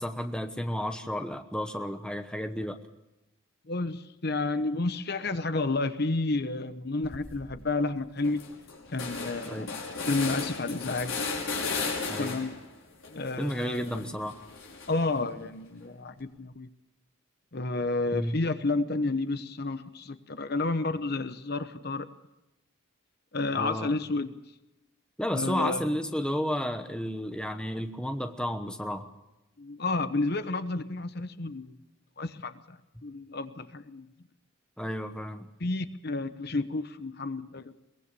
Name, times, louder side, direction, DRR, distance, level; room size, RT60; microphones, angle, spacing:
voice 1, 0.0-2.8 9.5-9.7 12.1-12.4 13.4-14.4 18.1-18.4 23.5-24.0 25.2-29.1 34.8-35.5, equal, 5° left, 7 dB, 1.1 m, -32 dB
voice 2, 3.7-8.4 8.9-11.1 12.2-12.5 13.1-14.0 14.9-16.7 17.5-22.1 23.3-24.3 25.3-25.9 29.6-31.7 32.2-34.1 35.6-37.7, left 3 dB, 50° left, 11 dB, 1.0 m, -31 dB
sound 1, 7.0-7.5 7.9-8.0 8.2-12.7 13.0-15.2, left 4 dB, 80° left, 5.5 m, -35 dB
22.5 x 20.0 x 6.9 m, 0.95 s
head